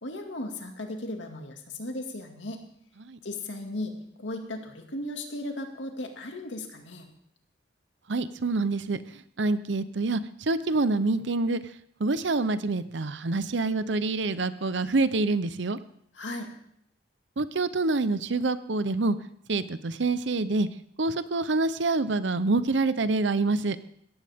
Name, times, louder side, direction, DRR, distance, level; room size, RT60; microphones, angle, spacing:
voice 1, 0.0-2.6 3.2-7.1 16.1-16.5, left 1 dB, 85° left, 3 dB, 2.2 m, -36 dB
voice 2, 8.1-9.0 9.4-11.6 12.0-15.8 17.4-19.2 19.5-20.7 21.0-23.8, right 3 dB, 75° right, 13 dB, 0.8 m, -26 dB
17.0 x 14.5 x 3.6 m, 0.69 s
head